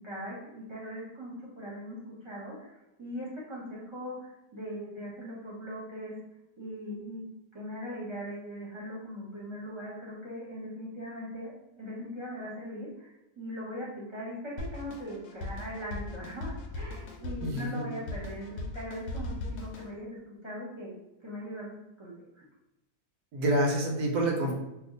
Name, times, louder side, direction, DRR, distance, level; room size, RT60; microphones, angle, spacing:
voice 1, 0.0-2.0 2.2-6.1 6.6-7.2 7.5-21.0 21.2-22.5, equal, 20° right, -6 dB, 0.9 m, -40 dB
Drum kit, 14.6-19.9, left 2 dB, 80° left, 1.1 m, -39 dB
voice 2, 17.4-17.9 23.3-24.5, right 1 dB, 80° right, 0 dB, 1.2 m, -27 dB
2.9 x 2.4 x 3.8 m, 0.93 s
omnidirectional pair, 1.7 m